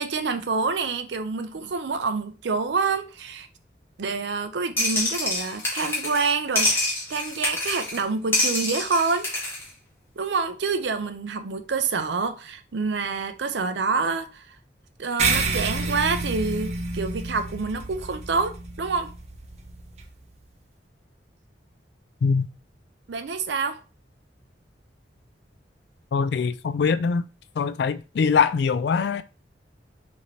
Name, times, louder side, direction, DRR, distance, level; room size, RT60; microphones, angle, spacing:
voice 1, 0.0-3.5 4.0-6.7 7.1-9.3 10.2-14.5 15.0-19.1 23.1-23.8, right 4 dB, 75° right, 0.6 m, -27 dB
sound 1, 4.8-6.3 6.6-8.0 8.3-9.6, left 1 dB, 15° left, 1.4 m, -26 dB
sound 2, 15.2-20.0, right 3 dB, 35° right, 0.7 m, -29 dB
voice 2, 26.1-27.2 27.6-29.2, left 5 dB, 70° left, 0.3 m, -22 dB
5.1 x 2.8 x 3.1 m
head